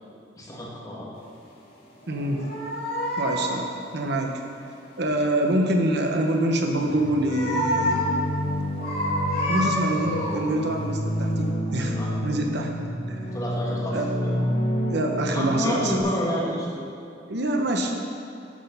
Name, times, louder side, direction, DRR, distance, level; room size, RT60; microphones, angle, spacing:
voice 1, 0.4-1.1 11.9-12.2 13.3-14.0 14.2-14.3 15.3-16.9, equal, 20° left, -6 dB, 2.2 m, -29 dB
sound 1, 2.0-3.7 6.9-8.3 8.8-10.6 11.2-11.3, equal, 55° left, 2.3 m, -28 dB
voice 2, 2.1-2.4 3.2-4.3 5.0-8.0 9.5-12.7 13.1-13.3 13.9-14.1 14.9-16.0 17.3-17.9, right 1 dB, 60° right, 2 dB, 1.0 m, -25 dB
sound 2, 6.9-16.0, equal, 35° left, 2.8 m, -29 dB
12.5 x 6.4 x 5.6 m, 2.6 s
head